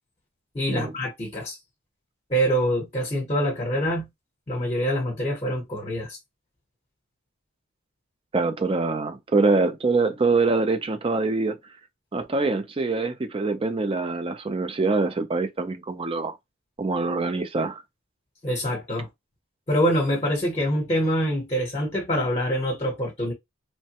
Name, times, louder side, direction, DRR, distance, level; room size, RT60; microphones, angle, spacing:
voice 1, 0.5-1.6 2.3-4.1 4.5-6.2 18.4-19.1 19.7-23.3, equal, 30° left, 0.9 m, -25 dB
voice 2, 8.3-11.6 12.1-16.4 16.8-17.8, right 3 dB, 25° right, 0.4 m, -24 dB
3.1 x 2.2 x 2.8 m
head